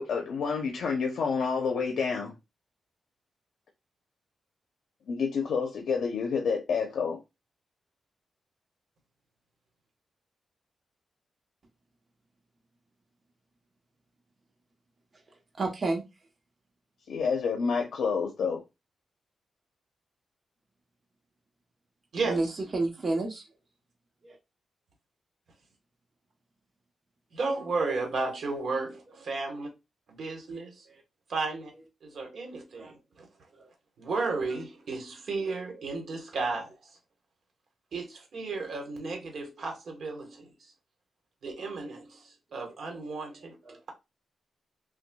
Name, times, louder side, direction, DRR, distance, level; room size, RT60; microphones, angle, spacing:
voice 1, 0.0-2.3 5.1-7.2 17.1-18.6, left 5 dB, 90° left, 0.7 m, -29 dB
voice 2, 15.6-16.0 22.3-23.4 24.2-24.4 30.9-31.0 32.7-32.9 33.5-33.7 35.4-35.5 42.5-42.6 43.6-43.8, right 2 dB, 35° right, 0.9 m, -31 dB
voice 3, 27.3-29.7 30.1-30.8 31.3-31.7 32.0-33.3 34.0-36.7 37.9-40.5 41.4-43.6, right 3 dB, 60° right, 1.3 m, -33 dB
6.0 x 2.3 x 2.3 m
wide cardioid pair, 150°, 0 cm